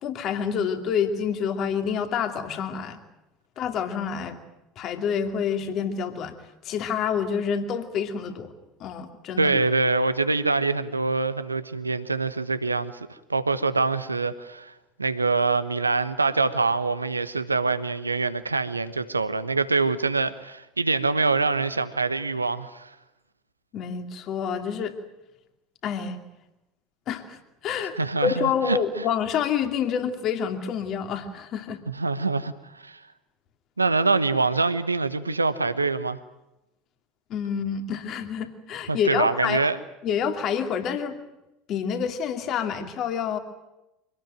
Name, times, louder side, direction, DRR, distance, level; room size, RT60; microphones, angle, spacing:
voice 1, 0.0-3.0 3.6-4.4 4.8-6.3 6.6-8.5 8.8-9.5 23.7-25.0 25.8-26.2 27.1-27.4 27.6-31.8 37.3-39.7 40.0-41.2 41.7-43.4, left 7 dB, 45° left, 7 dB, 2.7 m, -28 dB
voice 2, 9.4-14.7 15.0-22.9 28.0-29.0 31.9-33.0 33.8-36.2 38.9-39.8, right 3 dB, 85° right, 13 dB, 1.1 m, -25 dB
25.5 x 18.5 x 9.1 m, 0.95 s
figure-of-eight pair, 70°, 0 cm